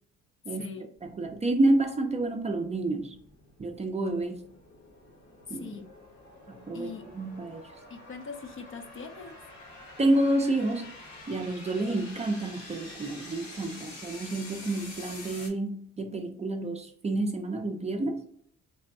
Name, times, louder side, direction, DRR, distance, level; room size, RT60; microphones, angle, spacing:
voice 1, 0.5-0.9 5.5-5.9 6.7-7.1 7.9-9.4, left 5 dB, 45° left, 7 dB, 0.5 m, -41 dB
sound 1, 1.0-15.5, left 2 dB, 65° left, 1.2 m, -47 dB
voice 2, 1.0-3.1 3.6-4.4 5.5-5.7 6.5-7.7 10.0-10.9 11.3-18.2, right 2 dB, 20° right, 4 dB, 0.4 m, -29 dB
3.3 x 2.1 x 2.6 m, 0.62 s
cardioid pair, 90°, 30 cm